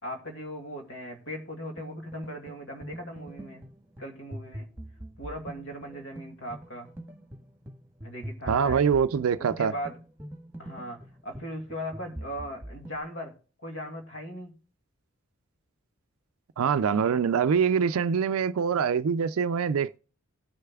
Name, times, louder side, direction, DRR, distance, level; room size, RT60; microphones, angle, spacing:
voice 1, 0.0-3.6 4.0-4.7 5.2-6.9 8.0-8.8 9.4-9.9 10.6-13.3 13.6-14.5, equal, 60° left, 2.3 m, -38 dB
sound 1, 1.8-13.0, right 1 dB, 10° right, 1.4 m, -43 dB
voice 2, 8.5-9.7 16.6-20.0, right 6 dB, 80° right, 0.4 m, -24 dB
19.0 x 6.6 x 2.3 m
head